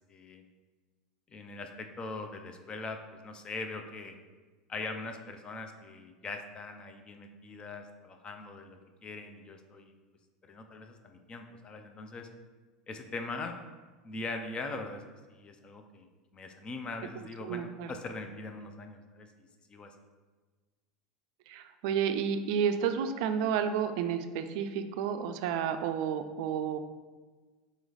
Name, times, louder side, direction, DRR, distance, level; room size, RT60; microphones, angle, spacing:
voice 1, 0.1-0.4 1.3-4.2 4.7-9.9 10.4-12.3 12.9-13.6 14.0-15.0 15.3-19.3 19.7-19.9, left 3 dB, 30° left, 6 dB, 0.5 m, -41 dB
voice 2, 17.4-17.9 21.5-26.8, right 7 dB, 65° right, 8 dB, 0.3 m, -31 dB
4.0 x 3.1 x 3.9 m, 1.3 s
hypercardioid pair, 95°, 3 cm